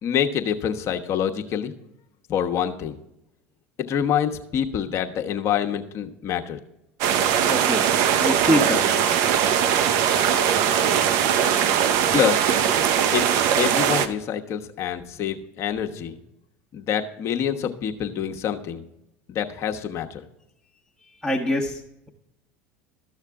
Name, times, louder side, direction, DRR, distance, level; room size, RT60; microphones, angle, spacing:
voice 1, 0.0-1.7 2.3-3.0 3.8-6.6 12.1-12.5 13.1-13.2 13.6-16.2 16.7-18.8 19.3-20.2, left 9 dB, 50° left, 4 dB, 1.1 m, -26 dB
sound 1, 7.0-14.1, right 9 dB, 65° right, 0.8 m, -20 dB
voice 2, 7.5-7.9 8.2-8.9 21.2-21.8, left 1 dB, ahead, 0 dB, 1.4 m, -24 dB
13.5 x 6.5 x 3.6 m, 0.85 s
hypercardioid pair, 95°, 6 cm